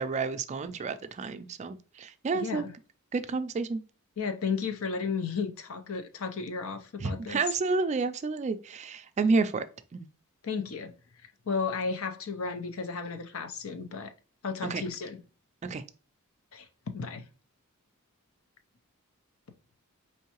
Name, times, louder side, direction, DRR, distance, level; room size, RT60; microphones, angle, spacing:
voice 1, 0.0-2.7 3.1-3.8 7.0-9.6 9.9-10.1 14.6-14.8 15.6-15.8, right 4 dB, 30° right, 0.3 m, -30 dB
voice 2, 2.3-2.7 4.2-7.4 10.4-10.9 11.5-14.1 14.4-15.2 16.5-16.7 16.9-17.2, left 5 dB, 65° left, 0.6 m, -33 dB
4.6 x 3.2 x 2.9 m
head